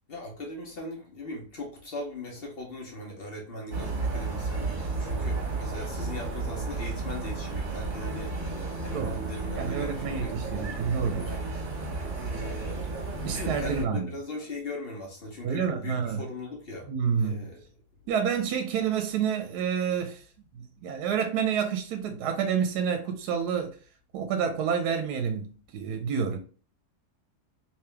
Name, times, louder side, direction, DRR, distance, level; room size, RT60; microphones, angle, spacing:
voice 1, 0.1-10.3 11.2-16.9 17.2-17.6, left 2 dB, 45° left, 1.0 m, -39 dB
sound 1, 3.7-13.8, right 3 dB, 35° right, 1.2 m, -33 dB
voice 2, 9.6-11.4 13.2-14.1 15.4-16.3 16.9-17.5 18.1-20.3 20.5-23.8 24.1-26.4, right 7 dB, 75° right, 1.1 m, -29 dB
3.3 x 3.0 x 3.3 m
omnidirectional pair, 1.7 m